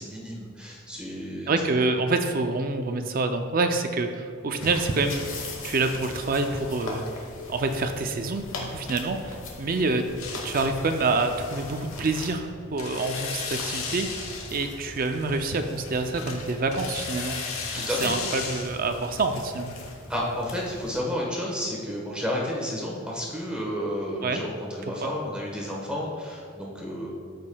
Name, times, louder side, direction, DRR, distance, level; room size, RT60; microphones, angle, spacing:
voice 1, 0.0-1.8 17.7-18.1 20.1-27.1, equal, 5° right, -3 dB, 1.2 m, -31 dB
voice 2, 1.5-5.2 5.6-7.0 7.5-10.0 10.4-19.7 24.2-24.4 25.0-25.1, right 3 dB, 40° right, 6 dB, 0.4 m, -27 dB
sound 1, 4.6-12.4 13.4-21.0, left 2 dB, 70° left, 1.2 m, -41 dB
sound 2, 10.2-19.9, left 4 dB, 85° left, 1.0 m, -37 dB
13.5 x 5.2 x 2.3 m, 2.2 s
head